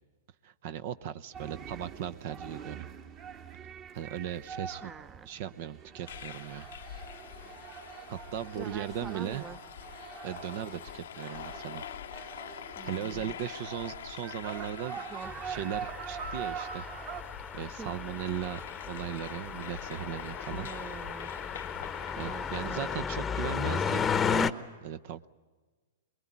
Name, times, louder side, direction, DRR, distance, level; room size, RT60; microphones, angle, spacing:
voice 1, 0.4-2.9 3.9-4.9 5.2-6.7 8.1-9.5 10.2-11.8 12.8-15.0 15.4-16.9 17.5-18.6 18.9-20.7 22.2-24.1 24.8-25.3, right 10 dB, 55° right, 14 dB, 0.7 m, -37 dB
sound 1, 1.3-17.2, right 7 dB, 40° right, 2.0 m, -44 dB
voice 2, 4.8-5.3 8.6-9.6 12.8-13.4 14.9-15.3 17.8-17.9 20.5-21.3 22.2-23.1, right 6 dB, 20° right, 14 dB, 0.8 m, -45 dB
sound 2, 6.1-23.0, left 10 dB, 75° left, 0.7 m, -45 dB
sound 3, 15.2-24.5, left 6 dB, 20° left, 0.9 m, -34 dB
23.5 x 21.5 x 9.5 m, 1.4 s
hypercardioid pair, 115°, 0 cm